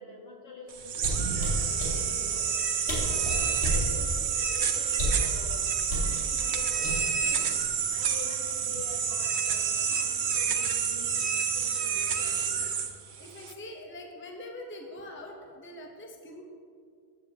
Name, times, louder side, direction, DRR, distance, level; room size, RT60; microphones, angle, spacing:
voice 1, 0.0-2.5 3.5-5.7 6.1-7.5 7.9-12.8, left 2 dB, 70° left, -3 dB, 2.0 m, -46 dB
sound 1, 0.7-13.5, right 7 dB, 85° right, 1.0 m, -29 dB
sound 2, 0.9-1.9 2.6-2.7 2.9-3.9 4.9-5.3 5.9-6.1 6.8-7.3 7.6-7.9, equal, 85° left, 2.5 m, -30 dB
voice 2, 2.9-3.2 8.2-8.3 12.2-12.4 13.2-16.5, left 1 dB, 10° left, 1 dB, 0.8 m, -44 dB
14.0 x 8.6 x 2.8 m, 2.2 s
omnidirectional pair, 1.1 m